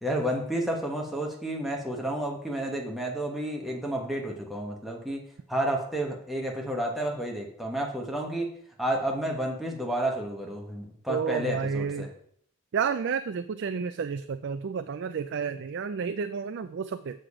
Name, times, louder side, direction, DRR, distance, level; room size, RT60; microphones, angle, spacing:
voice 1, 0.0-8.5 8.8-12.1, right 1 dB, ahead, -1 dB, 1.2 m, -31 dB
voice 2, 11.1-12.1 12.7-17.2, right 6 dB, 55° right, 11 dB, 0.3 m, -31 dB
7.8 x 6.5 x 4.9 m, 0.64 s
head